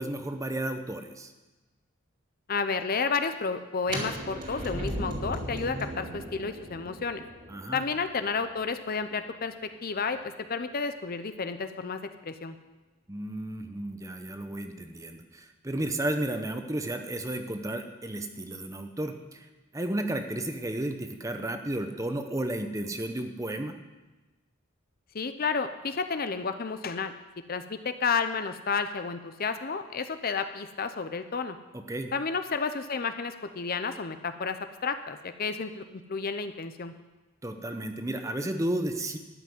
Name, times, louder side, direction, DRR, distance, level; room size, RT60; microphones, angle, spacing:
voice 1, 0.0-1.3 7.5-7.8 13.1-19.5 19.7-23.7 31.7-32.1 37.4-39.2, right 1 dB, 15° right, 6 dB, 0.8 m, -33 dB
voice 2, 2.5-7.2 7.7-9.5 9.8-12.0 12.3-12.6 25.1-27.1 27.5-31.6 32.1-36.9, left 5 dB, 45° left, 9 dB, 0.6 m, -31 dB
sound 1, 3.8-9.7, right 1 dB, 40° right, 2.4 m, -37 dB
13.0 x 5.9 x 9.4 m, 1.2 s
head